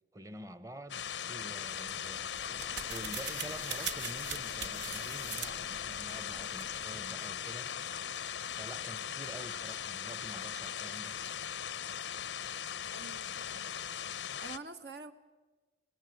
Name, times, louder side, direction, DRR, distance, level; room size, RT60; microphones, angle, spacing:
voice 1, 0.1-2.3 2.9-7.7 8.5-11.2, right 1 dB, 15° right, 0.8 m, -48 dB
sound 1, 0.9-14.6, left 9 dB, 90° left, 0.7 m, -39 dB
sound 2, 1.8-7.1, right 7 dB, 85° right, 1.5 m, -43 dB
sound 3, 2.4-14.2, equal, 45° right, 6.2 m, -60 dB
voice 2, 12.9-13.7 14.4-15.1, right 3 dB, 70° right, 1.0 m, -47 dB
25.5 x 18.0 x 7.8 m
head